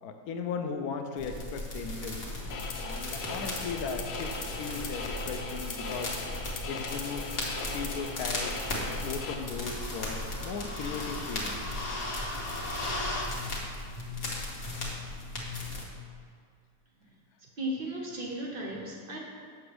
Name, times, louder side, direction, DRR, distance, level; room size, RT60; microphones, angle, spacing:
voice 1, 0.0-2.3 2.8-6.1 6.7-7.3 7.7-11.6, left 5 dB, 70° left, 6 dB, 1.0 m, -37 dB
sound 1, 1.2-15.8, left 1 dB, 50° left, 1.3 m, -36 dB
sound 2, 2.5-9.3, left 4 dB, 90° left, 0.5 m, -38 dB
voice 2, 17.4-19.2, right 1 dB, 60° right, 0 dB, 0.6 m, -36 dB
7.0 x 6.0 x 3.3 m, 2.2 s
omnidirectional pair, 1.8 m